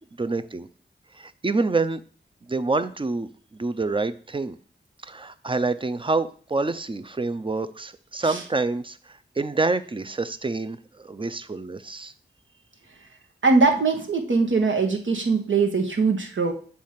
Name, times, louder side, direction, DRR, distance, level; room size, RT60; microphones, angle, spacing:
voice 1, 0.2-0.7 1.1-2.0 2.5-4.6 5.0-12.1, right 3 dB, 25° right, 11 dB, 0.6 m, -27 dB
voice 2, 13.4-16.5, right 4 dB, 75° right, 3 dB, 1.3 m, -21 dB
7.0 x 3.2 x 5.8 m, 0.43 s
cardioid pair, 45°, 20 cm